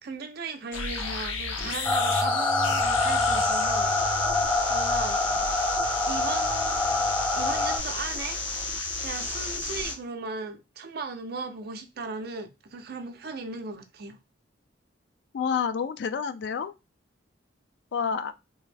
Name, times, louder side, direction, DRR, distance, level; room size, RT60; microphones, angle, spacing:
voice 1, 0.0-3.9 4.7-5.2 6.1-7.0 7.4-8.4 9.0-14.2, right 4 dB, 55° right, 0.5 m, -37 dB
sound 1, 0.7-9.9, left 3 dB, 90° left, 0.7 m, -32 dB
sound 2, 1.8-7.8, left 2 dB, 10° left, 0.6 m, -25 dB
voice 2, 15.3-16.7 17.9-18.3, left 6 dB, 60° left, 0.3 m, -28 dB
3.4 x 2.0 x 3.2 m
head